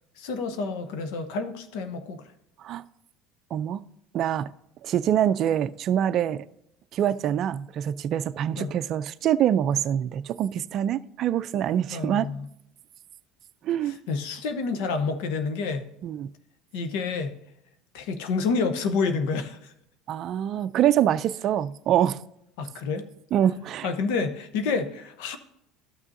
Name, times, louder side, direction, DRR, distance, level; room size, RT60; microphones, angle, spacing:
voice 1, 0.2-2.2 8.6-8.7 11.9-12.5 13.9-15.9 16.7-17.3 17.9-19.7 22.6-23.1 23.8-25.4, left 4 dB, 75° left, 0.9 m, -29 dB
voice 2, 3.5-3.8 4.1-4.5 4.8-6.4 6.9-12.3 13.6-14.0 16.0-16.3 20.1-22.2 23.3-23.9, right 10 dB, 50° right, 0.4 m, -25 dB
13.0 x 6.1 x 2.7 m
supercardioid pair, 95°, 0 cm